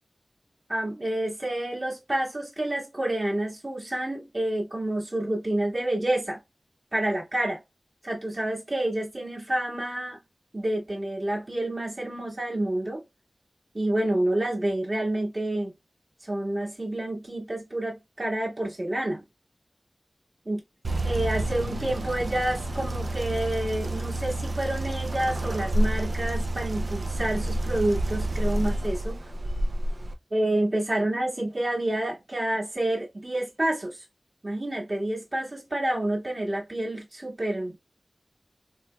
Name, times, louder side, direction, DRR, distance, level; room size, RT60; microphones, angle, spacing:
voice 1, 0.7-6.4 6.9-7.6 8.0-10.2 10.5-13.0 13.7-15.7 16.2-19.2 20.4-20.6 21.0-29.2 30.3-34.0 34.4-37.8, right 1 dB, 40° right, 1.7 m, -28 dB
sound 1, 20.8-30.1, right 1 dB, 70° right, 0.5 m, -29 dB
3.2 x 3.1 x 2.2 m
wide cardioid pair, 55°, 0 cm